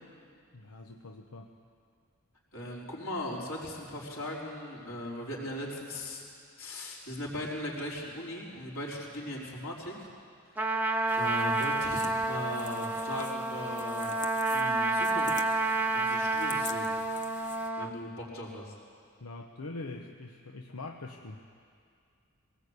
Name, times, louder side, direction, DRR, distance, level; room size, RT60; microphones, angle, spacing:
voice 1, 0.5-1.5 19.2-21.4, left 2 dB, 90° left, 3 dB, 1.1 m, -43 dB
voice 2, 2.5-6.2 6.6-10.1 11.1-14.1 14.5-15.6 15.9-16.9 17.8-18.7, left 1 dB, 65° left, -3 dB, 4.7 m, -38 dB
Trumpet, 10.6-17.9, right 2 dB, 10° right, 0.9 m, -30 dB
sound 1, 11.1-17.7, left 6 dB, 35° left, 1.0 m, -47 dB
21.5 x 19.0 x 8.3 m, 2.3 s
head